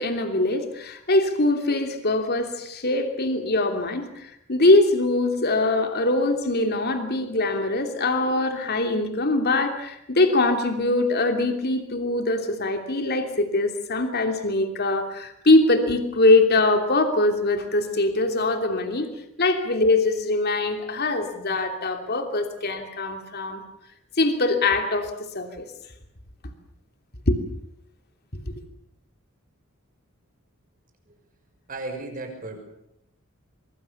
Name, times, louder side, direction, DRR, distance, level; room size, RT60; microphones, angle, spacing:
voice 1, 0.0-19.1 19.4-23.6 24.2-25.7 27.3-27.4 28.3-28.4, left 2 dB, 50° left, 6 dB, 3.0 m, -22 dB
voice 2, 31.7-32.6, right 2 dB, 40° right, 5 dB, 6.1 m, -35 dB
24.0 x 23.5 x 7.2 m, 0.77 s
head